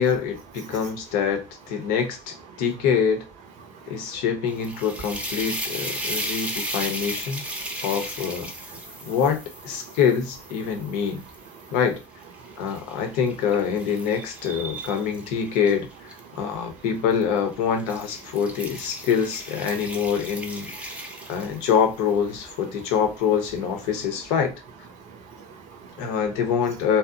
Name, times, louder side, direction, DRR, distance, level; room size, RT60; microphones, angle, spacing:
voice 1, 0.0-3.2 3.9-7.4 7.8-8.5 9.1-11.2 11.7-12.0 12.6-20.9 21.3-24.5 26.0-27.0, left 7 dB, 70° left, 0.6 m, -25 dB
voice 2, 3.6-4.2 7.7-7.8 8.7-9.1 9.9-10.0 11.7-11.8 12.4-12.6 14.5-14.9 20.8-21.3 25.1-26.1, right 6 dB, 55° right, 0.6 m, -42 dB
sound 1, 4.5-11.7 12.2-16.2 17.1-17.4 17.8-21.9, right 1 dB, 10° right, 0.6 m, -35 dB
2.6 x 2.0 x 2.4 m
figure-of-eight pair, 55°, 15 cm